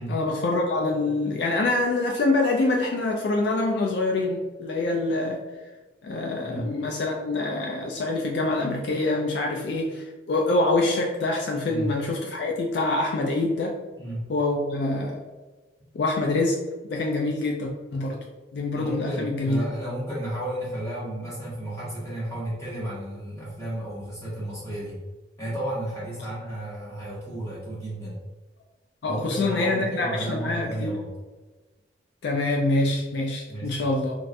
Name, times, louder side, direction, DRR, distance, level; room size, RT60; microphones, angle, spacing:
voice 1, 0.0-5.4 6.0-13.8 14.3-15.2 15.9-16.6 16.9-18.2 18.5-19.6 29.0-31.0 32.2-34.2, left 2 dB, 60° left, 0 dB, 0.3 m, -25 dB
voice 2, 6.4-6.7 11.6-11.9 14.0-14.3 18.7-25.0 25.4-28.2 29.0-31.1 33.5-33.9, right 1 dB, 15° left, -8 dB, 1.1 m, -33 dB
3.2 x 2.4 x 2.5 m, 1.2 s
head